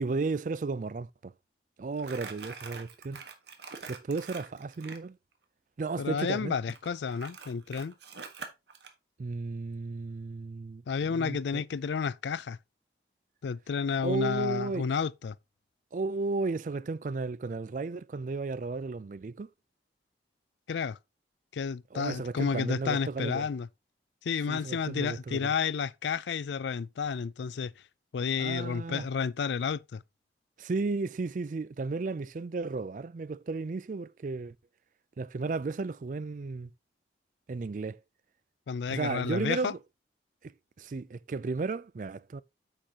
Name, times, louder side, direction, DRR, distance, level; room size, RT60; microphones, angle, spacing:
voice 1, 0.0-1.3 1.8-3.2 3.9-5.2 5.8-6.6 9.2-11.6 14.0-14.9 15.9-19.5 21.9-23.5 24.5-25.5 28.4-29.1 30.6-34.5 35.2-36.7 37.5-38.0 38.9-39.8 40.4-40.5 40.8-42.4, right 3 dB, 45° right, 0.4 m, -34 dB
Crumpling crinkling, 2.0-5.0 6.7-8.9, right 5 dB, 75° right, 1.5 m, -44 dB
voice 2, 6.0-7.9 10.9-12.6 13.4-15.4 20.7-21.0 21.5-23.7 24.2-27.7 28.1-30.0 38.7-39.7, left 6 dB, 80° left, 0.4 m, -31 dB
8.8 x 7.1 x 2.9 m
head